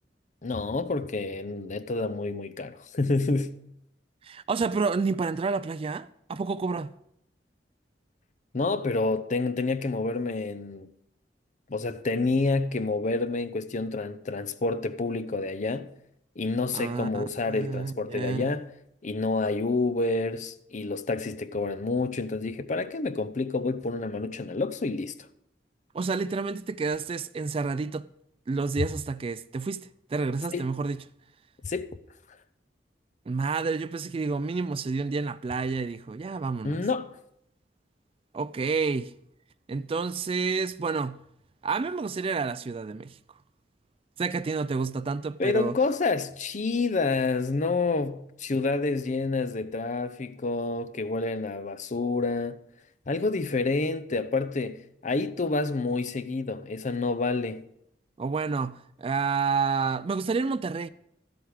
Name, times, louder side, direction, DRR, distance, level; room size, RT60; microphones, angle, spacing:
voice 1, 0.4-3.6 8.5-10.9 11.7-15.9 16.4-18.7 19.0-25.1 30.5-30.6 31.6-31.9 36.6-37.1 45.4-52.6 53.1-57.6, left 3 dB, 45° left, 0.6 m, -28 dB
voice 2, 4.2-6.9 16.7-18.6 25.9-28.1 28.5-31.0 33.3-36.8 38.3-39.1 39.7-41.2 41.6-43.2 44.2-45.8 58.2-60.9, right 4 dB, 30° right, 0.3 m, -29 dB
13.0 x 8.0 x 4.9 m
head